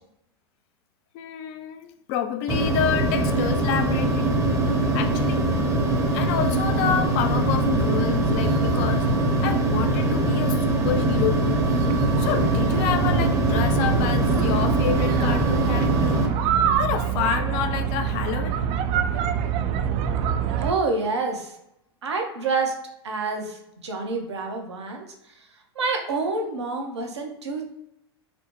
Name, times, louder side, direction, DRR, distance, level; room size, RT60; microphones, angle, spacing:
voice 1, 1.1-4.3 4.9-5.5 6.1-9.1 9.4-11.7 12.2-16.2 16.8-18.6, left 9 dB, 50° left, 8 dB, 0.5 m, -28 dB
sound 1, 2.5-16.3, right 2 dB, 20° right, 0.7 m, -22 dB
sound 2, 11.2-20.7, right 8 dB, 45° right, 0.4 m, -26 dB
voice 2, 20.6-21.5 22.0-22.7 23.0-23.6 23.8-25.1 25.8-27.7, right 3 dB, 85° right, 2 dB, 0.8 m, -27 dB
4.2 x 2.1 x 2.9 m, 0.81 s
hypercardioid pair, 90°, 14 cm